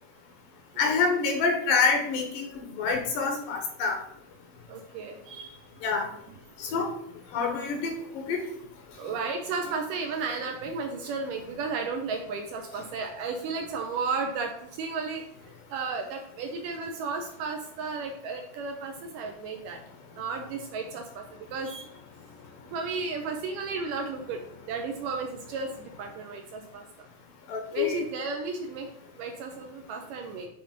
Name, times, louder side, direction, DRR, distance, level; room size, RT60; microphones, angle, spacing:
voice 1, 0.8-2.5 2.8-4.0 5.8-6.1 6.6-6.9 7.3-7.9 8.2-8.4 27.5-28.0, left 4 dB, 70° left, 3 dB, 2.4 m, -26 dB
voice 2, 4.7-5.6 9.0-19.8 20.1-21.9 22.7-24.4 24.7-26.8 27.7-28.9 29.2-30.5, right 4 dB, 75° right, 3 dB, 2.0 m, -34 dB
7.8 x 3.6 x 5.1 m, 0.74 s
omnidirectional pair, 4.3 m